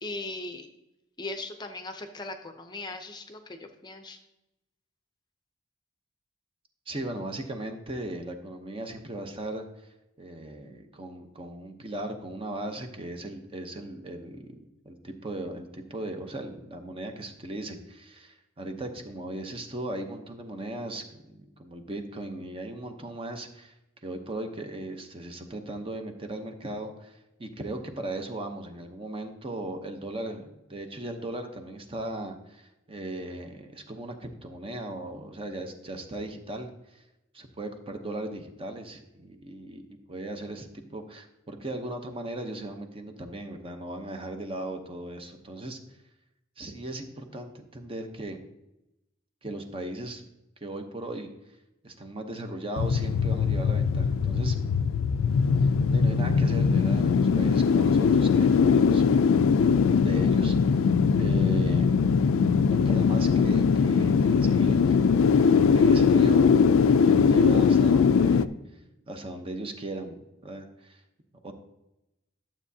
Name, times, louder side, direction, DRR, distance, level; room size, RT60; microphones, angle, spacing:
voice 1, 0.0-0.7 1.2-4.2, left 2 dB, 20° left, 6 dB, 0.6 m, -38 dB
voice 2, 6.9-9.7 10.2-14.5 14.8-23.7 24.0-37.0 37.3-39.8 40.1-45.8 46.6-48.4 49.4-50.2 50.6-51.3 51.8-54.6 55.6-59.0 60.0-60.9 61.2-61.9 62.7-66.7 67.0-68.8 69.1-71.0 71.4-71.5, right 1 dB, 30° right, 5 dB, 0.8 m, -37 dB
sound 1, 52.8-68.4, left 5 dB, 85° left, 0.3 m, -21 dB
11.5 x 7.2 x 2.7 m, 0.91 s
head